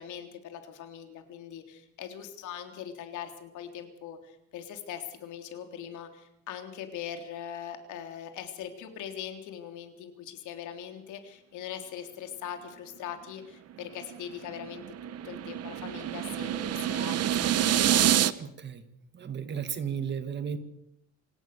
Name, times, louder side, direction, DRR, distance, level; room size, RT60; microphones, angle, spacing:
voice 1, 0.0-18.0, left 9 dB, 80° left, 6 dB, 3.6 m, -41 dB
sound 1, 14.0-18.3, right 11 dB, 55° right, 1.1 m, -27 dB
voice 2, 18.4-18.8 19.1-20.6, right 7 dB, 35° right, 10 dB, 2.1 m, -34 dB
26.5 x 17.5 x 7.0 m, 0.79 s
cardioid pair, 140°, 30 cm